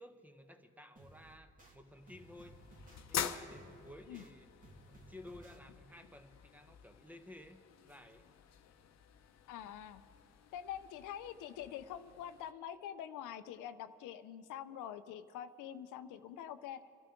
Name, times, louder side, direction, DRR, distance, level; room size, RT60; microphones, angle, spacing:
voice 1, 0.0-2.6 3.1-4.5 4.9-8.3, left 1 dB, 5° right, 7 dB, 1.0 m, -55 dB
sound 1, 1.0-1.7 2.1-3.0 3.5-4.3 4.6-5.6, right 1 dB, 25° right, 2.1 m, -58 dB
sound 2, 1.7-12.5, left 8 dB, 60° left, 0.8 m, -47 dB
voice 2, 9.5-10.0 10.5-16.8, left 10 dB, 90° left, 11 dB, 0.6 m, -45 dB
26.5 x 12.5 x 3.8 m, 2.5 s
cardioid pair, 90°, 30 cm